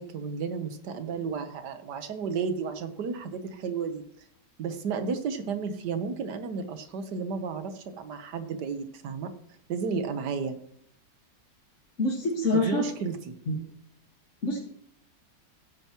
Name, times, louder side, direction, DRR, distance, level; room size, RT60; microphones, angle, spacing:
voice 1, 0.0-4.0 4.6-9.3 9.7-10.6 12.5-13.3, right 5 dB, 70° right, 9 dB, 1.6 m, -32 dB
voice 2, 12.0-12.8 13.5-13.6 14.4-14.6, left 2 dB, 45° left, -3 dB, 2.0 m, -26 dB
15.0 x 9.1 x 3.0 m, 0.66 s
omnidirectional pair, 1.9 m